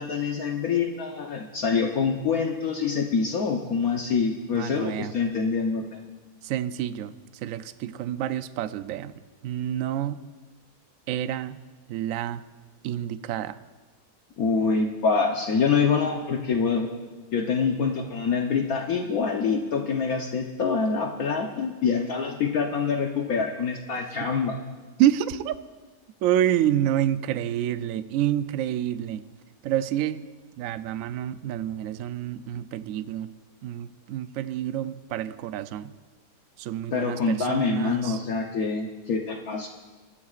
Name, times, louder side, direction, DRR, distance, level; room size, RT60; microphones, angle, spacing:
voice 1, 0.0-5.8 14.4-16.9 17.3-24.6 36.9-39.7, left 5 dB, 65° left, 1 dB, 1.3 m, -25 dB
voice 2, 4.5-5.1 6.4-9.1 9.4-10.2 11.1-11.6 11.9-12.4 12.8-13.6 24.0-24.3 25.0-25.6 26.2-29.2 29.6-30.3 30.6-33.3 33.6-35.9 36.6-38.2, right 11 dB, 70° right, 12 dB, 0.8 m, -28 dB
23.0 x 13.5 x 2.5 m, 1.3 s
omnidirectional pair, 1.8 m